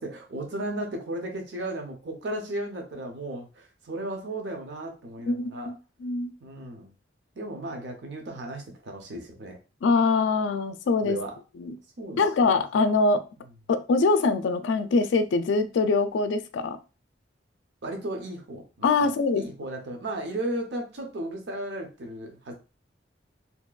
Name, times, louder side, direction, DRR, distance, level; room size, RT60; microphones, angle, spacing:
voice 1, 0.0-5.7 6.4-6.9 7.4-9.6 11.0-11.4 12.0-12.5 17.8-22.5, right 1 dB, 65° right, 3 dB, 0.6 m, -35 dB
voice 2, 5.3-5.7 6.0-6.3 9.8-11.2 11.6-11.7 12.2-13.2 13.7-16.8 18.8-19.5, left 3 dB, 80° left, 10 dB, 0.3 m, -23 dB
2.8 x 2.2 x 2.3 m, 0.32 s
head